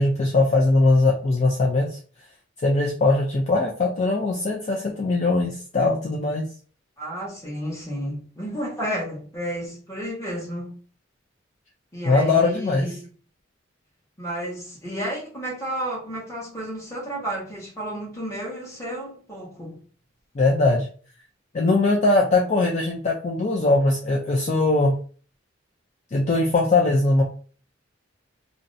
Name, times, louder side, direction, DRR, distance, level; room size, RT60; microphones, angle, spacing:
voice 1, 0.0-2.0 2.6-6.4 12.0-12.9 20.3-20.9 21.5-24.9 26.1-27.2, left 2 dB, 35° left, -1 dB, 0.4 m, -20 dB
voice 2, 7.0-10.7 11.9-13.1 14.2-19.8, equal, 15° left, -4 dB, 1.0 m, -32 dB
2.5 x 2.1 x 2.5 m, 0.41 s
head